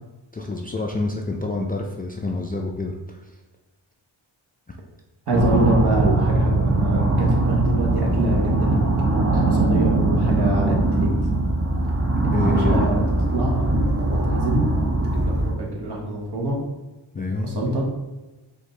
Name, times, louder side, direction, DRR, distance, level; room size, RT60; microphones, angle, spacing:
voice 1, 0.3-3.3 12.1-12.9 17.1-17.5, left 2 dB, 20° left, 0 dB, 0.3 m, -27 dB
sound 1, 5.3-15.5, right 2 dB, 30° right, 0.8 m, -21 dB
voice 2, 5.3-8.8 9.1-11.1 12.4-13.0 13.3-13.6 14.2-14.7 15.1-16.6 17.4-17.9, right 1 dB, 55° right, -2 dB, 1.3 m, -25 dB
4.7 x 2.6 x 3.2 m, 1.1 s
cardioid pair, 80°, 48 cm